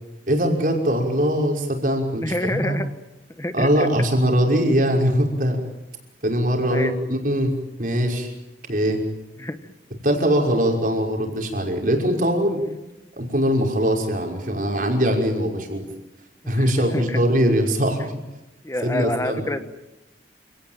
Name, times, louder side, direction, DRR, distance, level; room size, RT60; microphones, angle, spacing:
voice 1, 0.3-2.8 3.5-5.6 6.2-7.5 7.8-8.3 8.7-9.0 10.0-12.6 13.2-15.9 16.5-18.2 18.8-19.4, equal, 50° right, 2 dB, 5.7 m, -21 dB
voice 2, 2.2-2.9 3.4-3.9 6.7-6.9 9.4-9.6 16.4-17.2 18.6-19.6, left 1 dB, 15° left, 10 dB, 1.4 m, -27 dB
28.5 x 18.0 x 9.1 m, 0.98 s
head